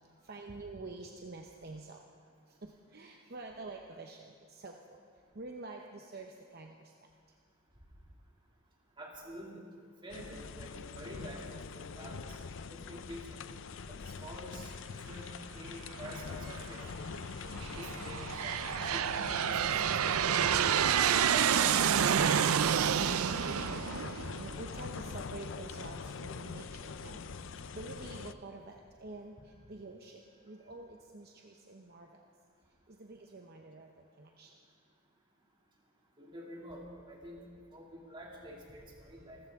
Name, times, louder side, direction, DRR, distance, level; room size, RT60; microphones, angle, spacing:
voice 1, 0.0-2.1 2.5-5.0 5.3-6.9 23.2-32.3 32.9-34.6, right 2 dB, 45° right, 2 dB, 0.8 m, -48 dB
voice 2, 9.0-9.6 10.0-13.4 13.9-14.7 15.1-16.9 17.4-20.4 21.0-22.4 36.2-37.4 37.7-39.4, equal, 20° right, -2 dB, 2.5 m, -48 dB
sound 1, 10.1-28.3, left 5 dB, 60° left, 0.5 m, -44 dB
Aircraft, 16.1-16.6 17.3-24.9, right 8 dB, 90° right, 0.5 m, -29 dB
27.0 x 14.5 x 3.6 m, 2.1 s
head